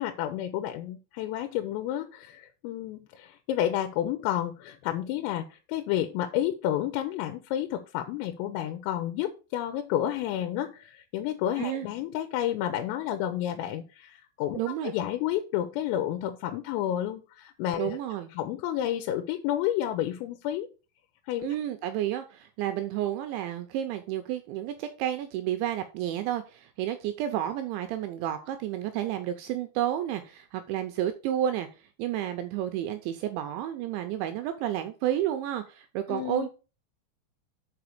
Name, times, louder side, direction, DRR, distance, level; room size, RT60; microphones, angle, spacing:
voice 1, 0.0-18.0 18.3-20.7 21.2-21.5 36.1-36.5, left 12 dB, 85° left, 7 dB, 3.4 m, -30 dB
voice 2, 14.5-14.9 17.8-18.3 21.4-31.7 32.0-36.5, right 11 dB, 90° right, 8 dB, 2.7 m, -31 dB
7.0 x 5.0 x 6.6 m, 0.33 s
omnidirectional pair, 5.9 m